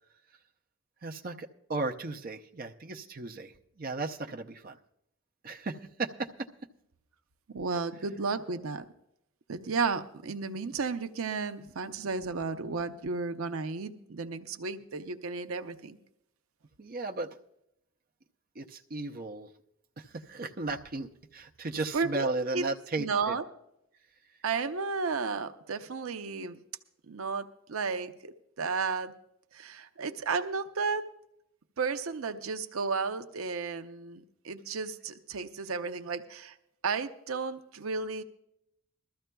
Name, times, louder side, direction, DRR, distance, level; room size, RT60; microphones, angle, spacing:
voice 1, 1.0-3.5 3.8-4.8 5.4-6.3 16.8-17.3 18.6-19.5 20.0-23.3, right 3 dB, 45° right, 2 dB, 0.6 m, -35 dB
voice 2, 7.5-8.9 9.5-16.0 21.9-22.7 23.0-23.4 24.4-26.6 27.1-29.1 29.5-31.0 31.8-36.6 36.8-38.2, right 4 dB, 85° right, 9 dB, 0.6 m, -33 dB
22.0 x 13.5 x 2.3 m, 0.79 s
head